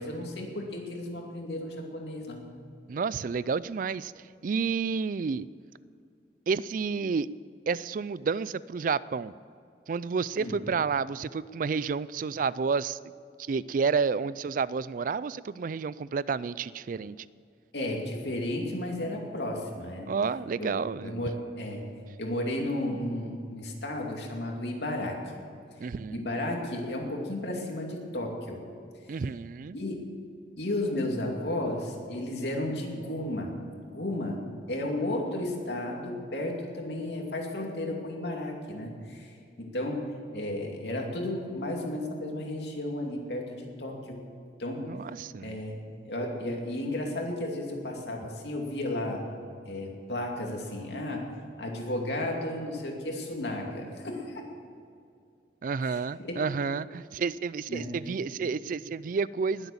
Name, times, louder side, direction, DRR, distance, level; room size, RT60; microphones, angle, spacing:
voice 1, 0.0-2.5 10.4-10.6 17.7-20.1 20.6-20.7 21.0-21.8 22.2-25.4 26.1-28.6 29.1-29.2 29.7-30.0 30.6-33.5 33.9-40.0 40.3-44.2 44.6-44.8 45.4-49.2 49.7-51.2 51.6-54.4 55.9-56.4 57.7-58.0, left 1 dB, 70° left, 1 dB, 2.5 m, -33 dB
voice 2, 2.9-5.5 6.5-7.3 7.7-9.3 9.9-13.0 13.4-17.2 20.1-21.2 25.8-26.2 29.1-29.8 44.8-45.6 55.6-59.7, right 5 dB, 50° right, 19 dB, 0.3 m, -30 dB
20.0 x 8.0 x 7.2 m, 2.4 s
head